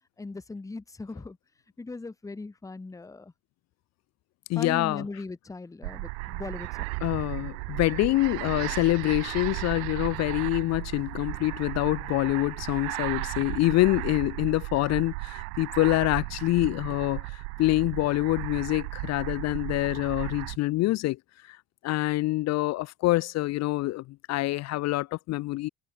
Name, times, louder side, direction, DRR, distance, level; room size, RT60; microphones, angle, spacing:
voice 1, 0.2-1.4 1.8-3.3 4.6-6.7, left 3 dB, 10° left, 0.8 m, -39 dB
voice 2, 4.5-5.1 7.0-21.2 21.5-21.6 21.8-25.7, left 18 dB, 50° left, 0.7 m, -26 dB
sound 1, 5.8-20.6, right 40 dB or more, 70° right, 1.7 m, -35 dB
hypercardioid pair, 60°, 33 cm